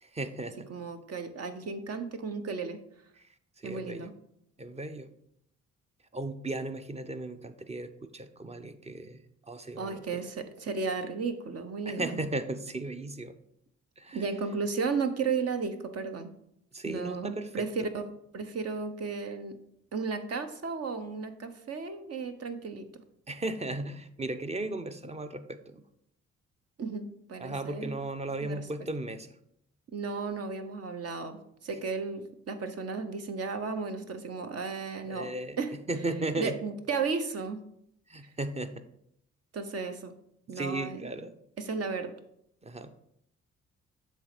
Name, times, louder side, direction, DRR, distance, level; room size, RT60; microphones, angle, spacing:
voice 1, 0.0-0.7 3.2-3.3 3.6-4.1 4.6-5.1 6.1-10.3 11.9-13.3 14.0-14.3 16.7-17.7 23.3-25.9 27.4-29.4 35.1-35.6 35.9-36.6 38.1-38.8 40.5-41.3 42.6-42.9, right 2 dB, 20° right, 10 dB, 0.7 m, -36 dB
voice 2, 0.7-2.8 3.6-4.1 9.8-12.2 14.1-16.3 16.8-18.0 18.3-19.6 19.9-23.0 26.8-28.0 28.4-28.6 29.9-35.3 35.6-35.7 36.4-37.6 39.5-40.1 40.5-41.0 41.6-42.1, right 4 dB, 50° right, 8 dB, 0.9 m, -34 dB
7.7 x 3.3 x 5.0 m, 0.74 s
supercardioid pair, 55°, 31 cm